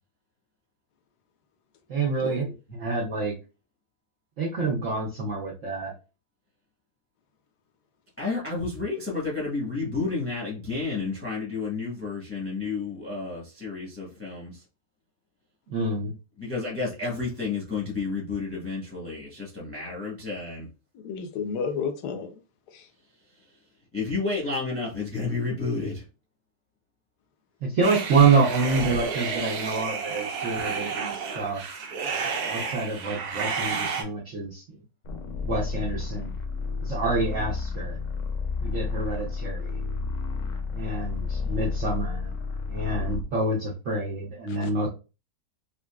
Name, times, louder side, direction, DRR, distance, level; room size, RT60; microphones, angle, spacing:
voice 1, 1.9-3.3 4.4-5.9 15.7-16.1 27.6-31.6 32.5-34.8 35.4-36.3 36.8-38.0 38.6-39.8 40.7-42.3 42.7-44.9, right 3 dB, 55° right, 1.1 m, -27 dB
voice 2, 8.2-14.6 16.4-20.7 23.9-26.0, left 4 dB, 10° left, 0.8 m, -31 dB
voice 3, 20.9-22.3 22.7-22.9 44.5-44.9, left 6 dB, 85° left, 1.2 m, -32 dB
sound 1, 27.8-34.0, right 5 dB, 80° right, 1.2 m, -31 dB
sound 2, 35.0-43.3, left 4 dB, 65° left, 0.9 m, -31 dB
3.8 x 2.5 x 2.2 m
omnidirectional pair, 1.7 m